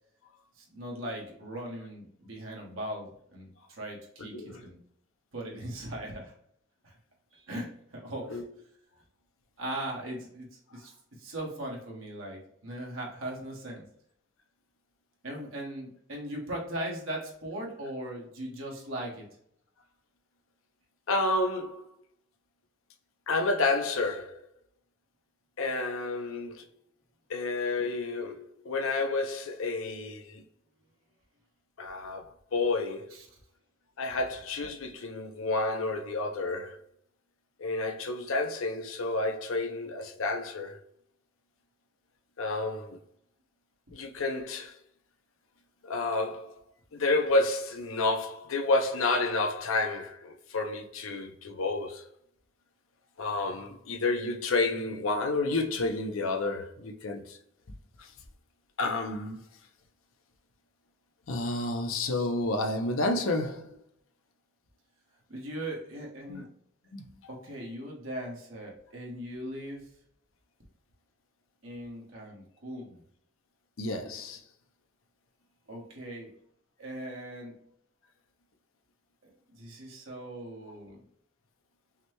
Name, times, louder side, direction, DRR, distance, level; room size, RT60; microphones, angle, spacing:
voice 1, 0.6-4.8 5.3-6.3 6.8-6.9 7.3-8.4 9.6-10.9 11.2-13.8 15.2-19.2 33.1-33.3 65.3-66.4 67.3-69.9 71.6-73.0 75.7-76.3 76.8-77.6 79.2-81.0, right 1 dB, 80° right, 1.5 m, -39 dB
voice 2, 21.1-21.8 23.3-24.4 25.6-26.6 27.3-30.4 31.8-32.2 32.5-33.1 34.0-36.8 37.6-40.8 42.4-43.0 43.9-44.7 45.8-46.5 46.9-52.0 53.2-57.4 58.0-58.1 58.8-59.4 61.3-63.8 66.3-66.4 66.9-67.1 73.8-74.4, left 2 dB, 85° left, 0.7 m, -30 dB
5.7 x 2.2 x 3.0 m
head